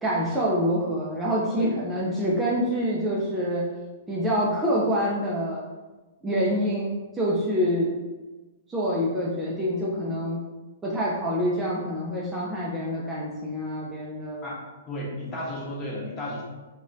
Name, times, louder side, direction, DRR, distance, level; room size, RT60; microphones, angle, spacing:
voice 1, 0.0-3.6 4.1-5.6 6.2-7.9 8.7-10.4 10.8-14.5, equal, 10° right, -6 dB, 0.4 m, -26 dB
voice 2, 14.9-16.4, left 1 dB, 25° left, -5 dB, 0.9 m, -33 dB
2.9 x 2.1 x 2.5 m, 1.2 s
figure-of-eight pair, 115°, 0 cm